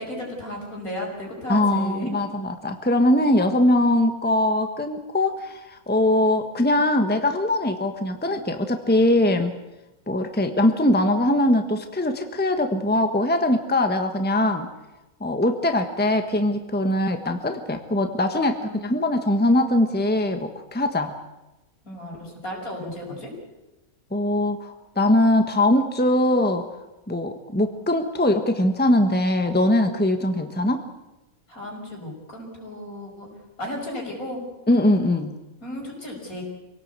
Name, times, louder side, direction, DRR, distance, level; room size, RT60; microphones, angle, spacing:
voice 1, 0.0-2.1 18.6-18.7 21.8-23.3 31.5-33.3 33.6-34.4 35.6-36.4, left 1 dB, 70° left, 0 dB, 6.3 m, -34 dB
voice 2, 1.5-9.5 10.1-14.7 15.2-21.2 24.1-30.8 34.7-35.4, left 1 dB, 5° left, 6 dB, 1.4 m, -21 dB
26.0 x 17.5 x 8.2 m, 1.0 s
omnidirectional pair, 1.5 m